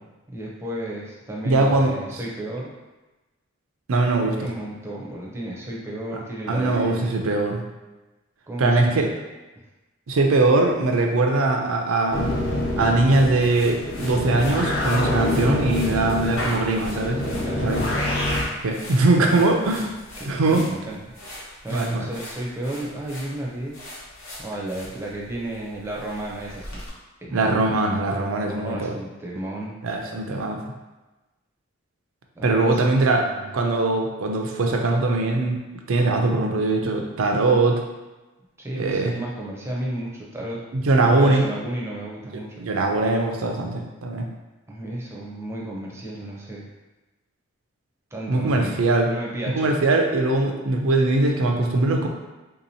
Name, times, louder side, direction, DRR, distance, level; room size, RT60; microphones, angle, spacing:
voice 1, 0.3-2.7 4.4-7.1 8.5-9.1 17.2-17.9 19.2-19.4 20.2-21.0 21.6-23.9 24.4-26.9 27.2-27.6 28.5-29.8 32.3-32.8 33.1-33.5 38.6-40.6 41.0-42.7 44.7-46.7 48.1-49.7, right 1 dB, 15° right, -4 dB, 0.5 m, -33 dB
voice 2, 1.4-1.9 3.9-4.3 6.5-7.6 8.6-9.1 10.1-12.3 12.8-17.2 17.6-17.8 18.6-19.9 20.3-20.6 21.7-22.1 27.3-29.0 29.8-30.6 32.4-33.3 33.5-35.6 35.9-37.8 38.7-39.1 40.7-41.5 42.6-44.3 48.3-49.1 49.5-52.1, right 2 dB, 90° right, 2 dB, 0.5 m, -21 dB
sound 1, 12.1-18.4, left 1 dB, 50° left, 0.7 m, -26 dB
sound 2, 13.1-26.9, left 1 dB, 75° left, 1.0 m, -40 dB
3.6 x 2.8 x 2.7 m, 1.1 s
head